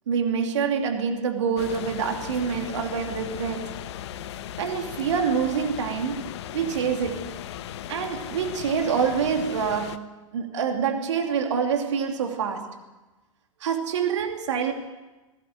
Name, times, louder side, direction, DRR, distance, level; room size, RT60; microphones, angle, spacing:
voice 1, 0.1-3.7 4.6-7.4 7.9-12.8 13.6-14.7, right 6 dB, 60° right, 2.8 m, -26 dB
sound 1, 1.6-10.0, left 11 dB, 55° left, 1.0 m, -37 dB
20.0 x 18.0 x 9.2 m
figure-of-eight pair, 95°, 17 cm